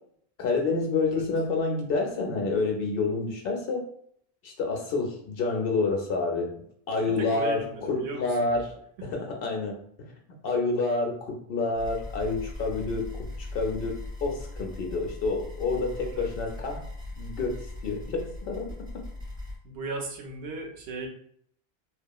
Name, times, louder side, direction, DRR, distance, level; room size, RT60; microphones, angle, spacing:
voice 1, 0.4-3.8 4.4-6.5 6.9-7.6 7.9-8.6 9.1-9.8 10.4-13.1 13.4-16.9 17.2-18.7, left 3 dB, 65° left, 2 dB, 0.8 m, -28 dB
voice 2, 6.9-8.5 16.1-16.3 19.6-21.1, right 3 dB, 85° right, 3 dB, 0.9 m, -36 dB
sound 1, 11.7-19.6, left 2 dB, 20° left, 1.5 m, -39 dB
2.7 x 2.3 x 2.3 m, 0.65 s
omnidirectional pair, 1.1 m